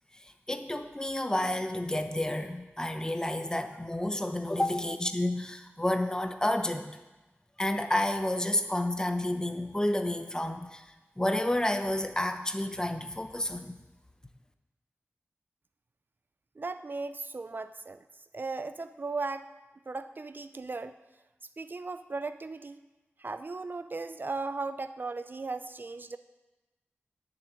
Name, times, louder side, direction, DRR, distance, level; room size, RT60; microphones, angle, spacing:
voice 1, 0.5-6.9 7.6-10.8 11.2-13.8, left 1 dB, 15° left, 7 dB, 0.9 m, -30 dB
voice 2, 16.6-18.0 18.3-19.5 19.9-21.0 21.6-22.8 23.2-26.2, right 3 dB, 50° right, 11 dB, 0.4 m, -37 dB
10.0 x 7.1 x 9.2 m, 1.1 s
wide cardioid pair, 90°, 4 cm